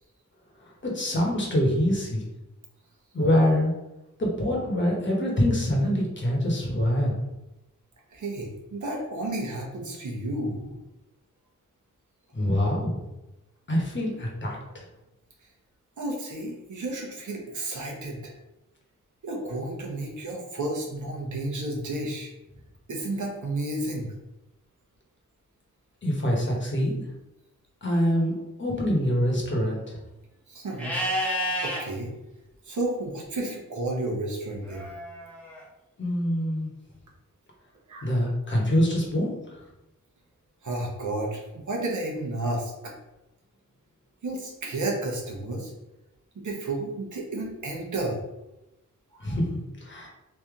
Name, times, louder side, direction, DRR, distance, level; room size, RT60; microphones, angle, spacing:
voice 1, 0.6-2.2 3.1-3.7 4.2-7.1 12.3-13.0 13.7-14.8 26.0-27.1 27.8-30.0 36.0-36.7 38.0-39.6 49.2-50.1, equal, 35° left, -2 dB, 1.1 m, -25 dB
voice 2, 8.1-10.8 16.0-18.3 19.2-22.3 22.9-24.1 30.5-31.0 31.6-32.1 32.6-34.9 37.9-38.1 40.6-42.9 44.2-45.7 46.3-48.2 49.1-49.4, right 2 dB, 70° right, -1 dB, 1.0 m, -32 dB
Livestock farm animals working animals, 30.8-31.8 34.7-35.6, equal, 5° left, 0.9 m, -30 dB
3.3 x 2.8 x 3.6 m, 0.97 s
wide cardioid pair, 125°, 32 cm